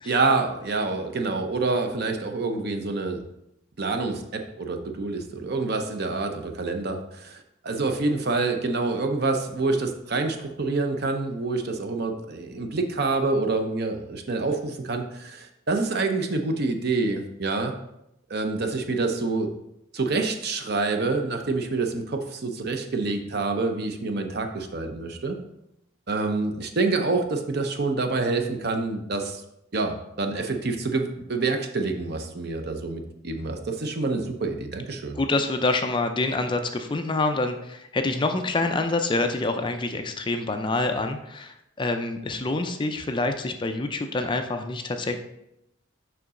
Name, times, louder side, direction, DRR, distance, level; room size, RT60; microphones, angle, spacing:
voice 1, 0.0-3.2 3.8-17.7 18.3-19.5 19.9-25.4 26.1-29.4 29.7-35.2, right 3 dB, 50° right, 5 dB, 0.7 m, -27 dB
voice 2, 35.2-45.2, left 2 dB, 25° left, 6 dB, 0.4 m, -26 dB
6.8 x 5.2 x 3.7 m, 0.83 s
head